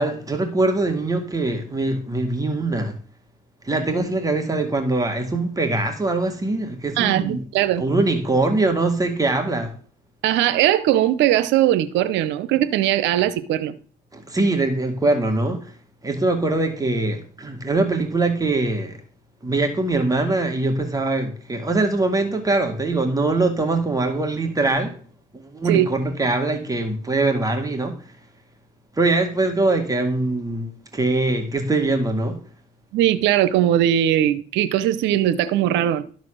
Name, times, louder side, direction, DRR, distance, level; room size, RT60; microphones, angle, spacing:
voice 1, 0.0-3.0 3.6-7.4 7.8-9.7 14.1-15.7 16.0-19.0 19.4-25.0 25.3-28.0 29.0-32.4, right 2 dB, 20° right, 2.0 m, -22 dB
voice 2, 7.0-7.8 10.2-13.7 25.6-25.9 32.9-36.0, right 12 dB, 85° right, 0.7 m, -19 dB
12.5 x 4.2 x 6.4 m
cardioid pair, 85°, 18 cm